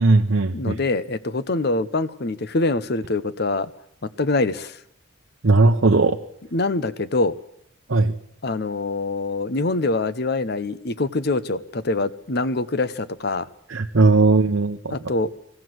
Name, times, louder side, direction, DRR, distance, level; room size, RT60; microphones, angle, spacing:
voice 1, 0.0-0.7 5.4-6.2 7.9-8.1 13.7-15.1, right 3 dB, 65° right, 3 dB, 0.8 m, -18 dB
voice 2, 0.5-3.7 4.0-4.8 6.5-7.3 8.4-13.5 14.9-15.3, left 2 dB, 50° left, 14 dB, 0.8 m, -24 dB
21.5 x 15.5 x 7.8 m, 0.74 s
head